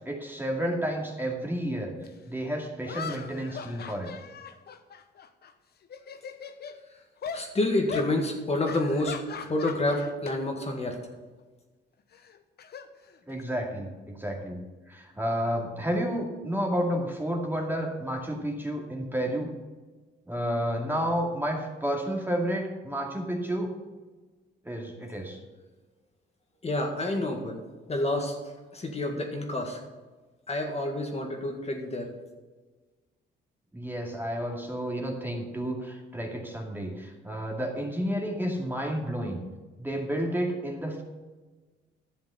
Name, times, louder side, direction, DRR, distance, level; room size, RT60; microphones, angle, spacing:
voice 1, 0.0-1.9 2.3-4.1 13.3-14.6 14.9-19.5 20.3-23.7 24.6-25.4 33.7-39.4 39.8-41.0, equal, 10° right, 0 dB, 2.3 m, -31 dB
sound 1, 2.0-2.1 2.8-5.5 5.8-6.8 7.2-7.5 7.9-8.1 8.6-10.4 10.7-10.9 12.1-13.6, left 6 dB, 55° left, 0.9 m, -40 dB
voice 2, 7.3-11.0 26.6-27.6 27.9-28.4 28.7-29.8 30.5-32.1, left 2 dB, 30° left, 1 dB, 1.9 m, -28 dB
11.5 x 7.1 x 7.0 m, 1.3 s
cardioid pair, 90°, 20 cm